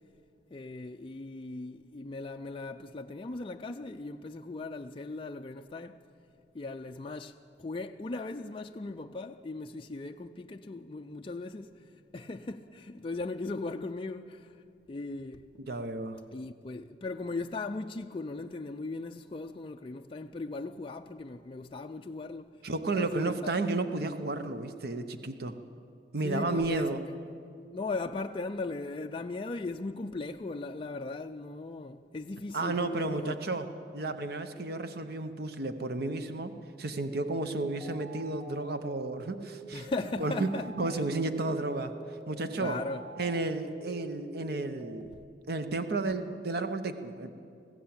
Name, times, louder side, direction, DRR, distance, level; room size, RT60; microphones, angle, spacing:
voice 1, 0.5-6.0 6.5-11.8 12.1-14.6 14.9-15.5 16.3-22.5 22.9-23.5 26.2-27.0 27.7-33.4 39.7-41.0 42.6-43.1, left 3 dB, 30° left, 0.4 m, -38 dB
voice 2, 15.6-16.2 22.6-25.5 26.1-27.0 32.5-33.7 33.9-36.5 36.8-39.9 40.2-40.5 40.8-41.9 42.3-42.8 43.2-45.1 45.5-47.3, right 2 dB, 65° right, 0.9 m, -32 dB
sound 1, 37.5-45.0, right 3 dB, 25° right, 1.2 m, -48 dB
20.0 x 15.5 x 8.7 m
head